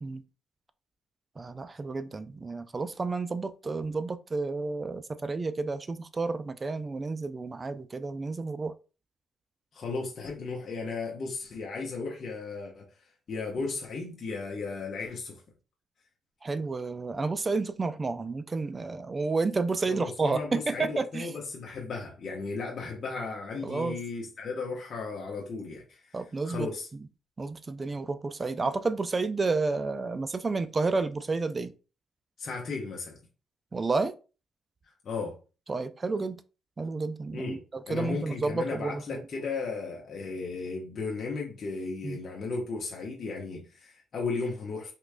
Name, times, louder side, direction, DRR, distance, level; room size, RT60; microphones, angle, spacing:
voice 1, 1.4-8.7 16.4-21.3 23.6-24.0 26.1-26.7 27.4-31.7 33.7-34.1 35.7-36.4 36.8-39.2 42.0-42.2, right 3 dB, 30° right, 0.3 m, -31 dB
voice 2, 9.7-15.4 19.9-26.2 26.4-26.9 32.4-33.2 35.0-35.4 37.3-37.6 37.8-44.9, left 4 dB, 50° left, 0.9 m, -35 dB
3.7 x 3.0 x 2.2 m
cardioid pair, 90°, 0 cm